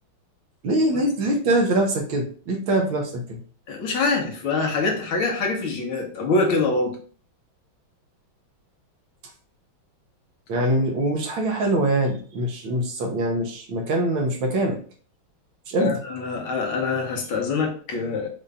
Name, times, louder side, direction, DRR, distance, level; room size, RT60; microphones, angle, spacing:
voice 1, 0.6-3.4 10.5-14.8 15.7-16.0, right 1 dB, 70° right, 2 dB, 1.7 m, -23 dB
voice 2, 3.7-7.0 15.8-18.3, left 3 dB, 75° left, 1 dB, 1.9 m, -24 dB
5.7 x 2.6 x 3.4 m, 0.43 s
omnidirectional pair, 2.3 m